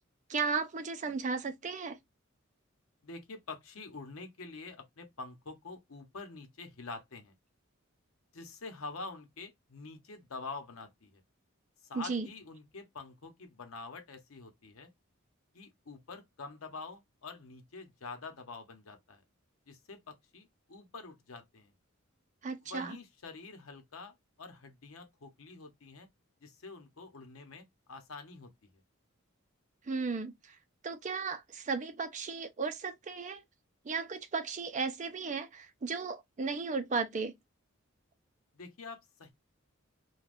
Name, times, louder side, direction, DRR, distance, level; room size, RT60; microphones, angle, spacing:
voice 1, 0.3-2.0 11.9-12.3 22.4-23.0 29.9-30.6 30.8-33.4 33.8-37.3, right 4 dB, 35° right, 0.5 m, -35 dB
voice 2, 3.0-7.3 8.3-11.2 11.9-14.9 15.5-19.2 19.7-21.7 22.6-26.1 26.4-28.8 38.5-39.3, left 4 dB, 90° left, 0.8 m, -46 dB
2.4 x 2.3 x 3.4 m
head